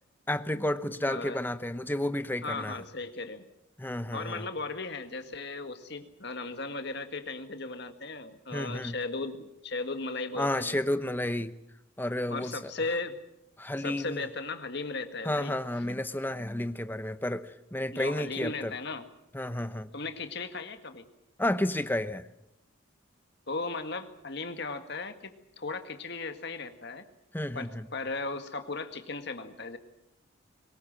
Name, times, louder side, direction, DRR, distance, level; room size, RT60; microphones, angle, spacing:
voice 1, 0.3-2.8 3.8-4.5 8.5-8.9 10.3-11.6 12.0-12.7 13.6-14.2 15.2-18.7 19.3-19.9 21.4-22.3 27.3-27.9, left 1 dB, 10° left, 11 dB, 0.8 m, -31 dB
voice 2, 1.0-1.4 2.4-3.4 4.1-10.8 12.3-13.2 13.8-15.6 17.9-19.0 19.9-21.1 23.5-27.0 27.6-29.8, left 3 dB, 50° left, 8 dB, 1.9 m, -36 dB
22.5 x 20.0 x 7.6 m, 0.84 s
head